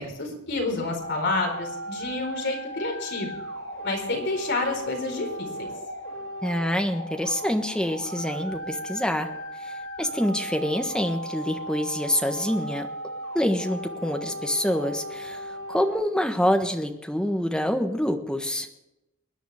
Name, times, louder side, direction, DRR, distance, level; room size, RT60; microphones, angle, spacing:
voice 1, 0.0-3.3 3.8-5.7, left 2 dB, 55° left, 1 dB, 4.5 m, -29 dB
sound 1, 1.0-16.0, equal, 75° left, 6.4 m, -36 dB
voice 2, 6.4-9.3 9.6-18.7, equal, 5° left, 5 dB, 1.3 m, -26 dB
23.0 x 10.5 x 3.6 m, 0.94 s
head